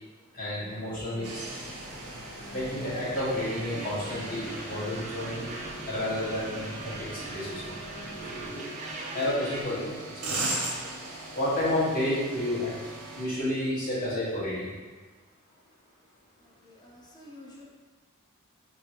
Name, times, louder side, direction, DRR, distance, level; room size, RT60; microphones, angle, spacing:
voice 1, 0.3-1.4 2.5-5.5 5.8-7.7 8.3-8.7 9.1-10.7 11.3-12.7 13.1-14.6, left 1 dB, 40° left, -10 dB, 1.4 m, -31 dB
sound 1, 1.1-8.5, left 1 dB, 70° left, 0.9 m, -46 dB
sound 2, 1.2-13.3, right 2 dB, 90° right, 0.7 m, -39 dB
sound 3, 3.1-9.6, right 2 dB, 35° right, 0.4 m, -41 dB
voice 2, 16.4-17.6, left 1 dB, 20° left, -3 dB, 0.6 m, -50 dB
3.2 x 3.1 x 2.8 m, 1.3 s
head